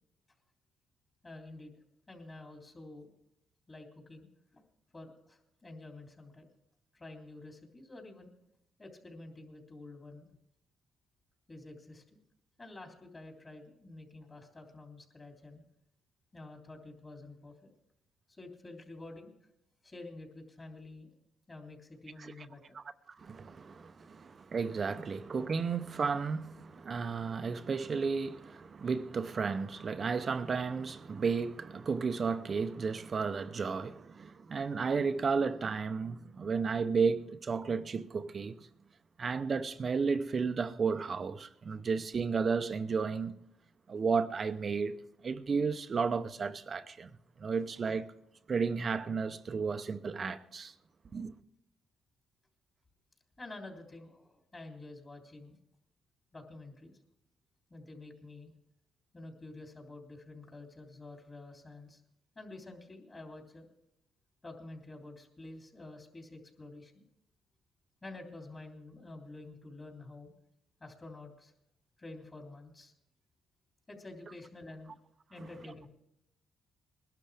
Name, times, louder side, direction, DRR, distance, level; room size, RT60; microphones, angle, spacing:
voice 1, 1.2-1.7 2.1-3.1 3.7-4.3 4.5-4.6 4.9-6.5 6.9-8.3 8.8-10.3 11.5-12.0 12.6-15.6 16.3-17.5 18.3-19.3 19.8-21.1 21.5-22.8 53.4-55.6 56.3-57.0 57.7-58.5 59.1-62.0 62.3-63.7 64.4-67.0 68.0-70.3 70.8-71.5 72.0-72.9 73.9-74.9 75.3-75.9, left 2 dB, 25° left, 3.3 m, -49 dB
voice 2, 22.7-38.6 39.2-43.4 43.9-45.0 45.2-47.1 47.4-48.1 48.5-50.7 51.1-51.3, right 5 dB, 40° right, 0.6 m, -33 dB
21.0 x 12.0 x 3.4 m
cardioid pair, 90°, 0 cm